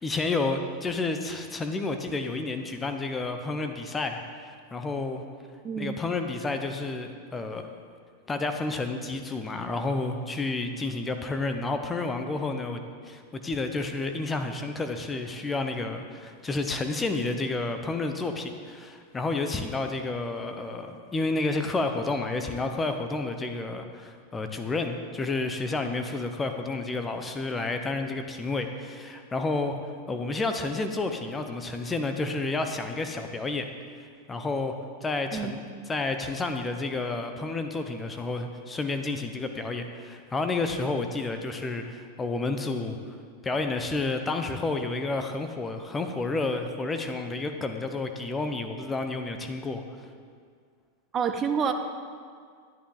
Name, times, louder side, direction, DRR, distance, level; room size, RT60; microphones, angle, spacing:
voice 1, 0.0-5.2 5.8-7.6 8.3-29.8 30.1-33.7 34.3-34.8 35.0-35.6 35.9-43.0 43.4-49.8, left 3 dB, 15° left, 6 dB, 0.9 m, -30 dB
voice 2, 51.1-51.7, right 7 dB, 25° right, 7 dB, 0.8 m, -27 dB
11.5 x 9.8 x 3.9 m, 2.1 s
figure-of-eight pair, 90°, 0 cm